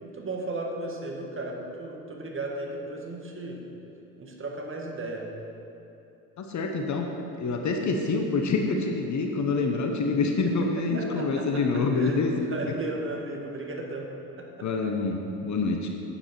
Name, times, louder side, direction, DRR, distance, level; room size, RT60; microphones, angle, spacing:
voice 1, 0.0-3.6 4.2-5.3 10.9-14.1 14.4-14.7, right 2 dB, 25° right, 0 dB, 1.9 m, -35 dB
voice 2, 6.4-7.1 7.4-12.8 14.6-15.9, left 3 dB, 40° left, 3 dB, 1.1 m, -26 dB
10.0 x 8.8 x 4.5 m, 2.9 s
hypercardioid pair, 60°, 45 cm